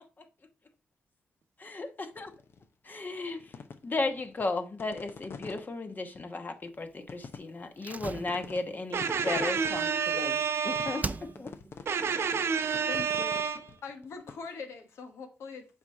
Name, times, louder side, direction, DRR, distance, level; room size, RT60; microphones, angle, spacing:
voice 1, 1.6-2.3 2.8-3.4 3.8-10.4 10.6-11.1 11.4-11.5, left 3 dB, 40° left, 1.1 m, -35 dB
sound 1, 2.2-2.6 3.1-5.6 6.1-6.2 6.7-6.8 7.1-8.0 8.3-8.6 8.9-10.2 10.7-11.1 11.4-11.9 12.3-14.4, left 5 dB, 60° left, 0.8 m, -45 dB
Slam, 7.8-10.5 11.0-11.7 12.0-12.1, right 3 dB, 35° right, 0.5 m, -40 dB
voice 2, 8.9-11.1 11.9-13.6, right 6 dB, 70° right, 0.9 m, -29 dB
voice 3, 12.9-13.4 13.8-15.7, left 5 dB, 85° left, 1.4 m, -42 dB
5.9 x 4.2 x 4.7 m
cardioid pair, 55°, 5 cm